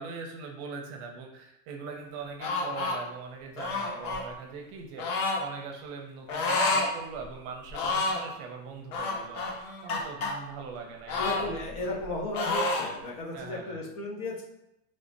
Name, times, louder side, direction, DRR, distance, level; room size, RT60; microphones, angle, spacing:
voice 1, 0.0-9.5 9.8-11.8 13.3-13.8, right 5 dB, 50° right, 2 dB, 0.7 m, -41 dB
sound 1, 2.4-3.0 3.6-4.2 5.0-5.4 6.3-6.9 7.2-7.3 7.7-8.3 8.9-10.3 11.1-12.1 12.3-12.9, left 3 dB, 90° left, 0.9 m, -29 dB
voice 2, 11.2-14.4, left 2 dB, 50° left, -1 dB, 0.9 m, -35 dB
3.2 x 2.0 x 4.0 m, 0.83 s
supercardioid pair, 135°, 43 cm